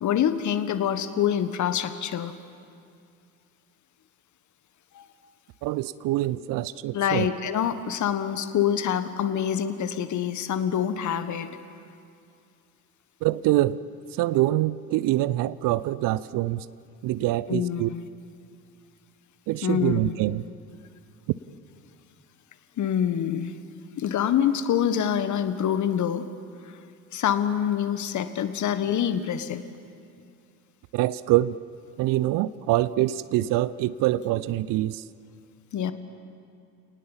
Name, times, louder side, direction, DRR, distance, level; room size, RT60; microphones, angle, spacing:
voice 1, 0.0-2.3 4.9-5.1 6.9-11.6 17.5-18.1 19.6-20.1 22.8-23.6 24.0-26.3 26.7-26.8 27.1-29.6 35.7-35.9, left 9 dB, 40° left, 11 dB, 1.6 m, -26 dB
voice 2, 5.6-7.3 13.2-13.8 14.1-16.7 17.0-17.9 19.5-20.4 30.9-31.6 32.0-35.0, right 15 dB, 50° right, 18 dB, 0.8 m, -25 dB
29.0 x 19.0 x 7.4 m, 2.4 s
figure-of-eight pair, 60°, 43 cm